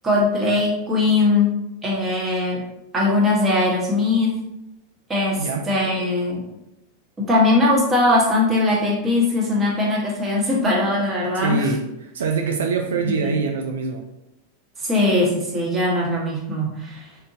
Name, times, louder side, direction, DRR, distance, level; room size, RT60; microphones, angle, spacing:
voice 1, 0.0-1.5 1.8-2.6 2.9-4.4 5.1-6.4 7.2-11.7 13.0-13.3 14.8-17.1, left 2 dB, 20° right, -4 dB, 1.3 m, -20 dB
voice 2, 5.3-5.7 11.3-14.1, right 4 dB, 75° right, 2 dB, 0.4 m, -24 dB
3.7 x 2.6 x 2.7 m, 0.88 s
hypercardioid pair, 100°, 0 cm